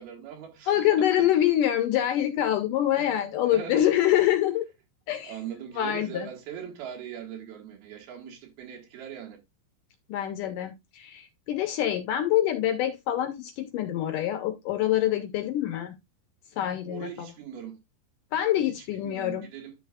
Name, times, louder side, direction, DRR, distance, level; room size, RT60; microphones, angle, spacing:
voice 1, 0.0-0.9 1.2-1.3 3.0-3.1 3.4-3.9 5.2-9.4 16.9-17.8 18.7-19.8, right 9 dB, 75° right, 3.6 m, -41 dB
voice 2, 0.7-4.6 5.1-5.4 5.8-6.3 10.1-16.0 16.6-17.3 18.3-19.5, left 12 dB, 75° left, 2.0 m, -25 dB
11.0 x 6.9 x 2.4 m
omnidirectional pair, 4.5 m